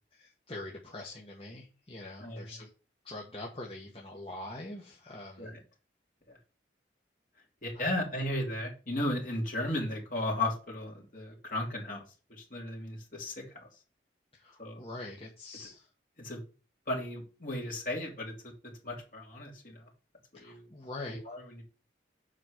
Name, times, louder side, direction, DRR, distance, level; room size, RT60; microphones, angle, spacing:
voice 1, 0.1-2.7 3.0-5.5 7.7-7.9 14.3-15.9 20.3-21.2, left 2 dB, 30° left, -1 dB, 1.4 m, -44 dB
voice 2, 7.6-12.0 12.3-13.7 14.6-14.8 16.2-16.4 16.9-18.3 18.6-19.8 20.3-20.7 21.1-21.6, left 1 dB, 50° left, -1 dB, 3.1 m, -35 dB
7.7 x 5.2 x 6.5 m, 0.35 s
head